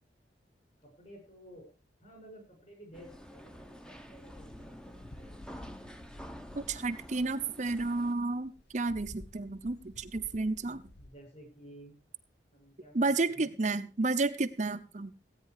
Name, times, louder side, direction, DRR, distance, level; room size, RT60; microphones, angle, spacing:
voice 1, 0.8-1.7 2.0-5.3 11.0-11.9 12.5-13.6, right 1 dB, 40° left, 2 dB, 7.1 m, -53 dB
sound 1, 2.9-8.1, equal, 5° left, 0.9 m, -49 dB
sound 2, 4.2-11.1, left 1 dB, 65° left, 1.2 m, -52 dB
voice 2, 6.6-10.8 12.9-15.1, right 3 dB, 40° right, 8 dB, 0.7 m, -31 dB
16.5 x 9.1 x 4.7 m, 0.33 s
head